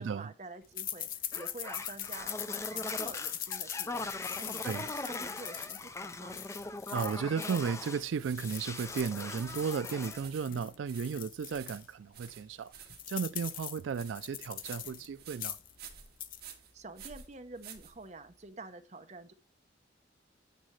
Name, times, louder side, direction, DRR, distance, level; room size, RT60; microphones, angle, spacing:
voice 1, 0.0-6.4 16.7-19.3, right 3 dB, 35° right, 0.8 m, -48 dB
sound 1, 0.8-7.9 8.2-11.8 12.3-12.4 12.6-15.1 15.3-15.7 16.1-16.4, left 11 dB, 45° left, 0.7 m, -42 dB
sound 2, 1.3-8.0 8.3-10.3, left 3 dB, 15° left, 0.4 m, -41 dB
voice 2, 6.9-12.7 13.1-15.6, right 6 dB, 80° right, 0.3 m, -34 dB
sound 3, 8.0-18.4, right 8 dB, 55° right, 1.9 m, -52 dB
10.0 x 7.5 x 3.2 m
head